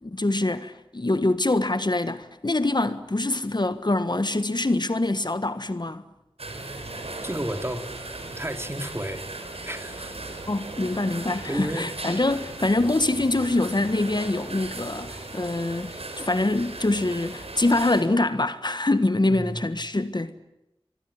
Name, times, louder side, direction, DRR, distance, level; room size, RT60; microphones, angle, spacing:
voice 1, 0.0-6.0 10.5-20.3, left 2 dB, 45° left, 1.6 m, -24 dB
sound 1, 6.4-18.0, right 2 dB, 90° right, 5.0 m, -37 dB
voice 2, 7.2-7.9 8.3-9.3 9.6-10.2 10.5-10.7 11.4-11.9 19.3-19.6, right 1 dB, 25° right, 3.1 m, -32 dB
25.0 x 22.5 x 9.9 m
wide cardioid pair, 45°, 10 cm